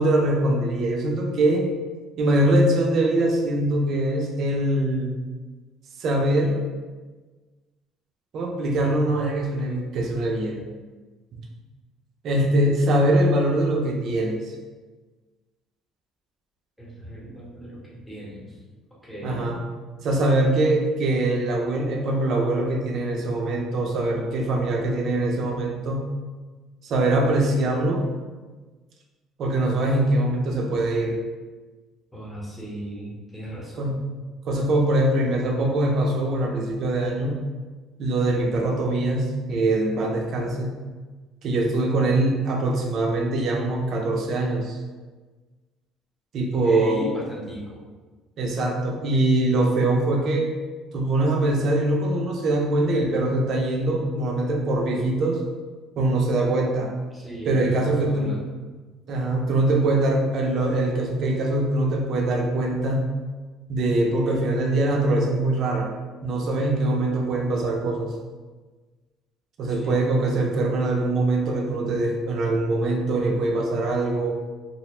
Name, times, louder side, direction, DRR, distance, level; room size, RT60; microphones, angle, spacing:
voice 1, 0.0-1.7 2.2-5.1 6.0-6.6 8.3-10.6 12.2-14.5 19.2-19.6 20.0-26.0 26.8-28.1 29.4-31.2 33.8-34.2 34.5-37.4 38.0-40.8 41.4-44.8 46.3-47.1 48.4-50.5 50.9-55.4 56.0-56.9 57.5-58.4 59.1-63.1 63.7-65.9 66.2-68.1 69.6-74.3, right 2 dB, 55° right, 1 dB, 0.4 m, -23 dB
voice 2, 16.8-18.6 19.0-19.5 32.1-34.0 46.6-47.8 57.1-58.4 69.7-69.9, right 1 dB, 5° left, -7 dB, 0.9 m, -36 dB
2.4 x 2.0 x 2.9 m, 1.3 s
cardioid pair, 120°, 0 cm